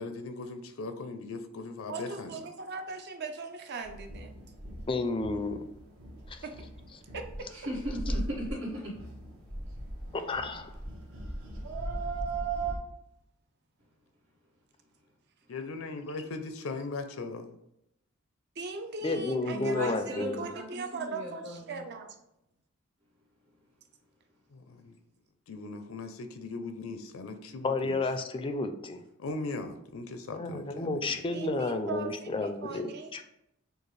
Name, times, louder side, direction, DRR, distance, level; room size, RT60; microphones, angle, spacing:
voice 1, 0.0-2.4 15.5-17.6 24.5-25.0 25.5-28.0 29.2-31.2, left 3 dB, 75° left, 8 dB, 0.5 m, -39 dB
voice 2, 1.9-4.3 6.1-6.5 7.1-7.5 18.6-22.2 31.3-33.2, right 4 dB, 55° right, 5 dB, 0.6 m, -39 dB
sound 1, 3.8-12.8, right 2 dB, 70° right, 1.2 m, -38 dB
voice 3, 4.9-5.6 6.3-6.4 10.1-10.7 19.0-20.4 27.6-29.0 30.3-33.2, left 2 dB, 25° left, 8 dB, 0.4 m, -31 dB
voice 4, 7.5-8.9 19.5-21.8, equal, 90° right, -4 dB, 1.7 m, -37 dB
6.4 x 2.4 x 3.2 m, 0.80 s
head